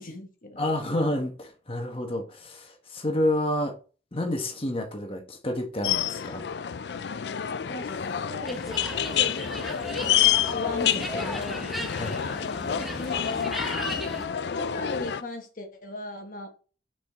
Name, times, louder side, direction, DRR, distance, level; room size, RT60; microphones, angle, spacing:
voice 1, 0.0-0.6 7.7-9.8 10.1-11.7 12.5-13.0 14.5-16.5, left 2 dB, 50° left, 1.4 m, -38 dB
voice 2, 0.6-3.7 4.1-6.5 11.9-12.2, left 1 dB, 30° left, 1.4 m, -29 dB
sound 1, 5.8-15.2, left 9 dB, 70° left, 0.4 m, -28 dB
sound 2, 8.5-14.3, equal, ahead, 0.9 m, -37 dB
6.1 x 5.0 x 3.6 m
head